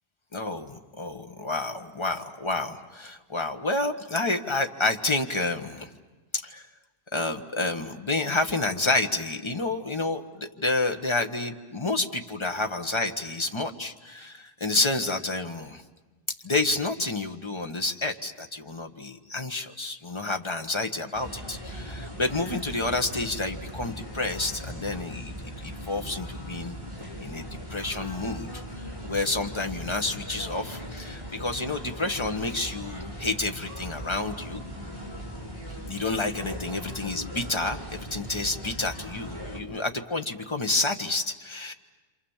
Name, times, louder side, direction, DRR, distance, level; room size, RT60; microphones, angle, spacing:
voice 1, 0.3-5.9 6.3-6.7 7.1-15.8 16.4-26.8 27.2-34.6 35.9-41.7, left 2 dB, 25° left, 5 dB, 1.3 m, -29 dB
sound 1, 21.1-39.6, equal, 30° right, 3.8 m, -39 dB
27.5 x 27.5 x 7.3 m, 1.2 s
omnidirectional pair, 1.1 m